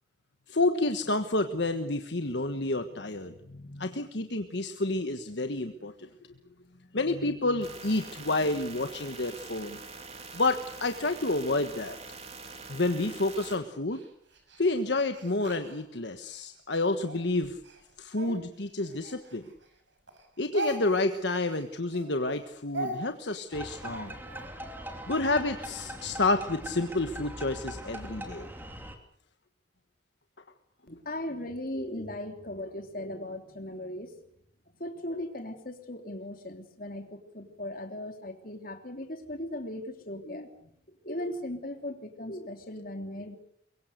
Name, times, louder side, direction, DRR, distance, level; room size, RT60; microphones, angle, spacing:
voice 1, 0.5-6.1 6.9-9.8 10.3-12.0 12.7-14.0 14.6-17.6 18.0-19.4 20.4-24.1 25.1-28.5, left 2 dB, 65° left, 7 dB, 1.4 m, -29 dB
sound 1, 7.6-13.6, right 4 dB, 35° right, 3.7 m, -45 dB
Speech, 13.3-16.4 17.0-19.8 20.1-24.5, right 2 dB, 70° right, 6.5 m, -41 dB
sound 2, 23.5-29.0, equal, 10° right, 2.7 m, -41 dB
voice 2, 30.9-34.2 34.8-40.5 41.0-43.4, left 1 dB, 45° left, 5 dB, 3.1 m, -38 dB
24.0 x 23.0 x 6.7 m, 0.68 s
head